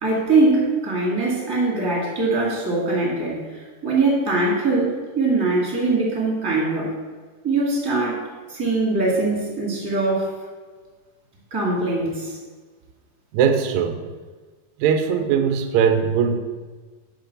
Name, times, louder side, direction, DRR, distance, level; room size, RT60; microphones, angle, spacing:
voice 1, 0.0-6.9 7.4-8.2 8.5-10.3 11.5-12.4, right 3 dB, 10° right, -3 dB, 1.6 m, -22 dB
voice 2, 13.3-14.0 14.8-16.4, right 7 dB, 70° right, 7 dB, 1.9 m, -20 dB
9.8 x 3.8 x 6.7 m, 1.4 s
omnidirectional pair, 3.9 m